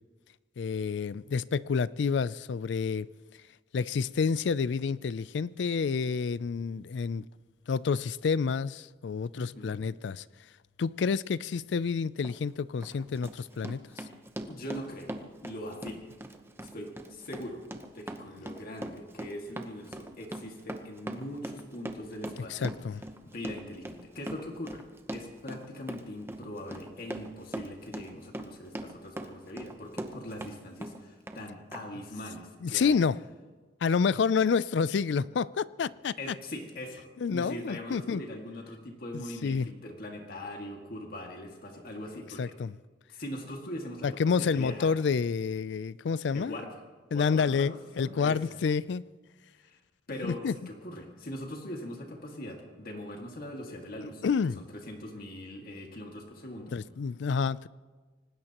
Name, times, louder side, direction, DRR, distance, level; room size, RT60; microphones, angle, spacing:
voice 1, 0.6-3.1 3.7-7.2 7.7-10.2 10.8-13.8 22.5-23.0 32.6-33.2 33.8-36.3 37.2-38.2 39.1-39.7 42.4-42.7 44.0-46.6 47.1-49.0 50.2-50.5 54.2-54.6 56.7-57.7, left 5 dB, 70° left, 0.4 m, -29 dB
voice 2, 9.3-9.8 14.5-16.0 16.6-17.6 17.9-22.7 23.2-24.8 25.1-33.0 36.2-42.5 43.1-44.9 46.3-46.8 47.1-48.4 49.6-49.8 50.1-54.2 54.6-56.8, left 1 dB, 55° left, 2.0 m, -41 dB
Run, 12.2-12.4 12.8-30.5 30.8-31.4 31.7-31.8, right 1 dB, 15° right, 0.9 m, -41 dB
25.5 x 19.0 x 3.0 m
head